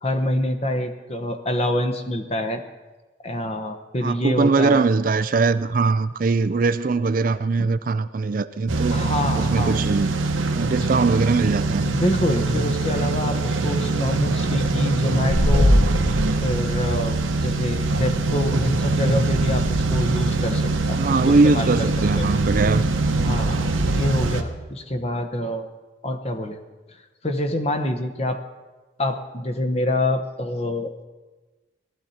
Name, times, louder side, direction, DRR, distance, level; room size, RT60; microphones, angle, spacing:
voice 1, 0.0-2.6 3.2-4.8 7.6-7.7 8.9-9.8 11.8-15.8 16.4-17.2 17.4-21.0 21.3-21.7 22.2-22.3 23.3-25.7 26.0-26.6 27.2-28.4 29.0-30.9, left 1 dB, 30° left, 8 dB, 1.0 m, -26 dB
voice 2, 4.0-9.0 9.4-10.2 10.5-11.8 20.9-22.8, right 4 dB, 45° right, 13 dB, 0.4 m, -21 dB
sound 1, 8.7-24.4, right 3 dB, 90° right, 1.1 m, -23 dB
sound 2, 15.3-20.8, left 1 dB, 85° left, 5.5 m, -25 dB
18.0 x 13.5 x 4.3 m, 1.2 s
head